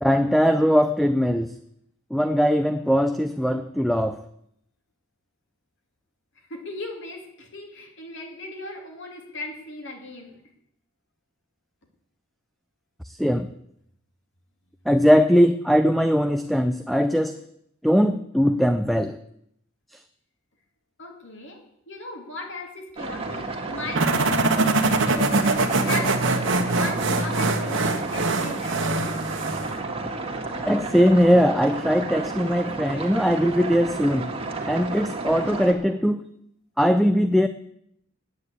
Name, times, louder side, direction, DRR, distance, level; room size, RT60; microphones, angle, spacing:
voice 1, 0.0-1.5 2.1-4.2 13.0-13.5 14.9-17.4 17.8-19.2 30.7-34.3 34.7-36.2 36.8-37.5, equal, ahead, 9 dB, 0.4 m, -20 dB
voice 2, 6.4-10.4 21.0-26.2 26.6-29.0, left 2 dB, 60° left, 2 dB, 2.5 m, -37 dB
sound 1, 23.0-35.7, right 3 dB, 30° right, 1.8 m, -32 dB
sound 2, 23.9-29.8, right 2 dB, 60° right, 1.4 m, -23 dB
9.6 x 9.5 x 8.3 m, 0.74 s
head